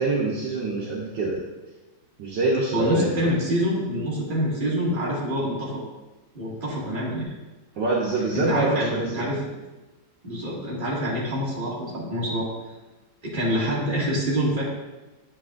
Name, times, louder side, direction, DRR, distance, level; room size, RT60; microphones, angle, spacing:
voice 1, 0.0-1.4 2.2-3.4 7.8-9.3, right 2 dB, 65° right, -4 dB, 1.4 m, -25 dB
voice 2, 2.7-5.8 6.3-7.3 8.3-9.6 10.2-12.5 13.2-14.6, equal, 25° right, -6 dB, 1.7 m, -26 dB
8.6 x 5.1 x 2.4 m, 1.1 s
omnidirectional pair, 2.2 m